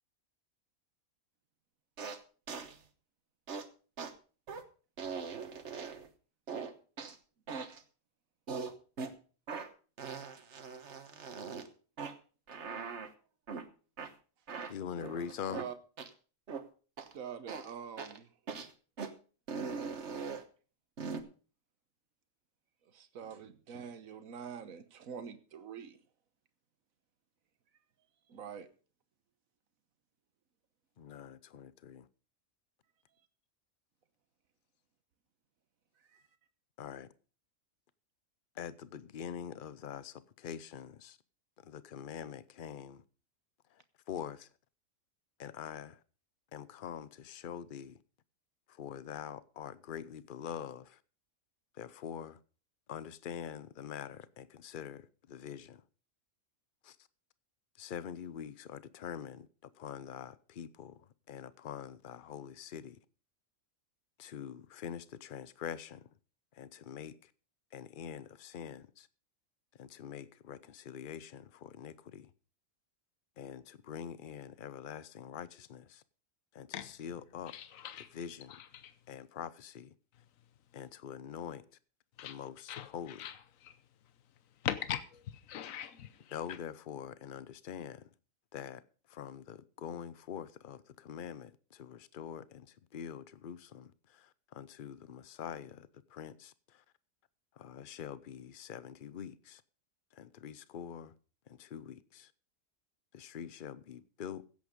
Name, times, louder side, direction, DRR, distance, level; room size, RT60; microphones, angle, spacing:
sound 1, 2.0-2.2 2.5-2.8 3.5-3.7 4.0-4.1 4.5-4.6 5.0-6.1 6.5-7.2 7.5-7.8 8.5-9.1 9.5-9.7 10.0-11.7 12.0-12.1 12.5-13.1 13.5-13.6 14.0-14.1 14.5-15.7 16.0-16.1 16.5-16.6 17.0-17.1 17.5-17.7 18.0-18.2 18.5-18.7 19.0-19.1 19.5-20.4 21.0-21.2, right 5 dB, 60° right, 1.5 m, -41 dB
voice 1, 14.7-15.6 31.0-32.1 36.8-37.1 38.6-41.2 41.6-43.0 44.1-44.5 45.4-46.0 46.5-48.0 48.7-51.0 51.8-52.4 52.9-55.8 56.8-57.0 57.8-59.5 59.8-61.0 61.3-63.0 64.2-66.0 66.5-67.1 67.7-69.1 69.8-72.3 73.4-76.0 76.5-76.7 77.0-77.5 78.1-78.6 79.1-79.9 80.7-81.6 82.2-83.3 86.3-88.0 88.5-88.8 89.1-96.8 97.6-99.6 100.1-101.1 101.5-102.3 103.1-104.4, left 8 dB, 50° left, 0.8 m, -44 dB
voice 2, 17.1-18.3 22.9-26.0 28.3-28.7 36.1-36.2, right 7 dB, 85° right, 1.5 m, -45 dB
voice 3, 77.5-78.2 78.5-79.0 82.2-82.4 82.7-83.8 84.6-86.6, left 10 dB, 80° left, 1.3 m, -41 dB
16.0 x 8.5 x 5.1 m
omnidirectional pair, 1.4 m